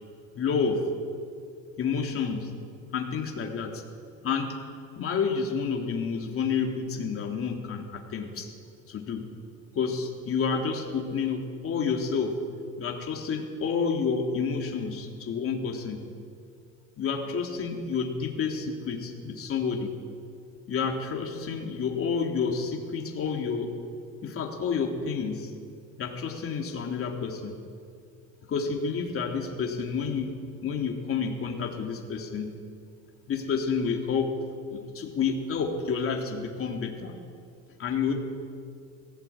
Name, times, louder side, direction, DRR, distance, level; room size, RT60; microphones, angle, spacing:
voice 1, 0.3-0.9 1.8-2.5 2.9-3.8 4.2-4.7 5.0-8.5 8.9-9.3 9.7-12.4 12.8-16.1 17.0-20.0 20.7-23.8 24.2-25.5 26.0-27.6 28.4-32.6 33.3-34.4 34.7-37.2 37.8-38.1, left 5 dB, 40° left, 2 dB, 3.5 m, -29 dB
22.0 x 17.0 x 9.0 m, 2.3 s
cardioid pair, 130°, 35 cm